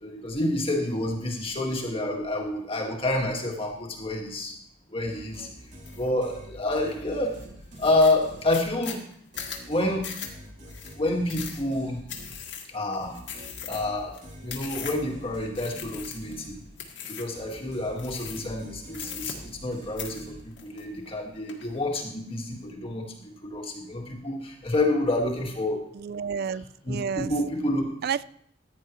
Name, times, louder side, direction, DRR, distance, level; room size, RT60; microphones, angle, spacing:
voice 1, 0.0-4.5 4.9-5.5 5.9-7.4 7.8-9.0 9.7-10.1 11.0-12.0 12.7-13.1 13.6-14.1 14.4-16.6 17.0-25.8 26.9-27.8, left 1 dB, 30° left, 0 dB, 1.8 m, -28 dB
sound 1, 5.0-9.0 9.3-17.0 17.3-20.8, equal, 40° right, 2.6 m, -46 dB
sound 2, 5.8-6.1 6.5-7.0 7.4-7.5 7.8-15.1 15.5-16.4 16.8-17.4 18.0-18.6 18.9-19.7 20.0-21.2 21.5-22.0, left 8 dB, 85° left, 1.9 m, -39 dB
voice 2, 25.9-27.3 28.0-28.2, right 7 dB, 55° right, 18 dB, 0.4 m, -30 dB
15.0 x 9.9 x 3.1 m, 0.68 s
head